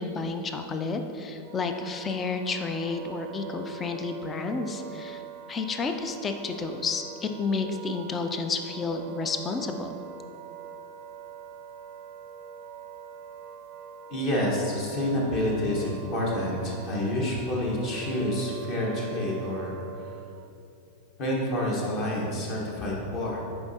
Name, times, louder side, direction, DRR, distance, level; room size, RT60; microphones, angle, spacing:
voice 1, 0.0-5.2 5.5-9.9, left 4 dB, 20° left, 6 dB, 0.4 m, -31 dB
Wind instrument woodwind instrument, 1.4-20.5, right 8 dB, 35° right, 0.5 m, -44 dB
voice 2, 14.1-20.2 21.2-23.4, left 1 dB, 40° left, -3 dB, 1.3 m, -28 dB
7.7 x 4.6 x 2.7 m, 2.7 s
figure-of-eight pair, 90°, 0 cm